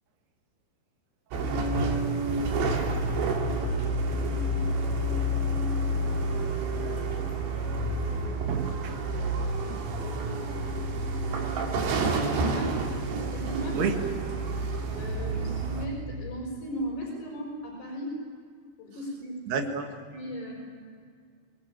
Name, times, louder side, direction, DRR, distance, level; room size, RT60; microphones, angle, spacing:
sound 1, 1.3-15.9, right 2 dB, 85° right, 4.6 m, -29 dB
voice 1, 3.0-3.4 3.8-4.3 4.8-5.3 5.9-6.2 8.5-9.0 9.7-9.9 13.8-13.9 19.5-19.8, right 7 dB, 70° right, 5 dB, 3.7 m, -34 dB
voice 2, 12.3-12.9 13.3-14.0 14.6-18.2 18.8-19.6 20.1-20.5, equal, 70° left, -2 dB, 7.1 m, -36 dB
26.0 x 21.0 x 8.7 m, 2.1 s
omnidirectional pair, 4.9 m